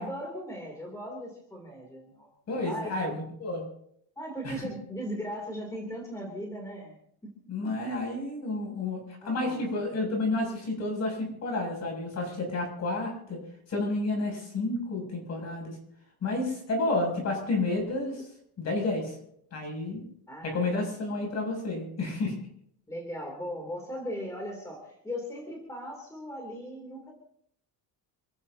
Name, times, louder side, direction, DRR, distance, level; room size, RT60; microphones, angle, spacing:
voice 1, 0.0-2.3 2.6-2.9 4.2-7.0 7.6-7.9 9.2-9.9 20.3-21.3 22.9-27.1, equal, 10° left, 0 dB, 3.0 m, -38 dB
voice 2, 2.5-3.7 4.4-4.6 7.5-9.0 9.2-13.4 13.7-15.8 16.2-18.3 18.6-19.2 19.5-20.0 20.4-22.4, left 2 dB, 40° left, 1 dB, 7.0 m, -30 dB
28.0 x 15.0 x 2.8 m, 0.70 s
cardioid pair, 175°, 39 cm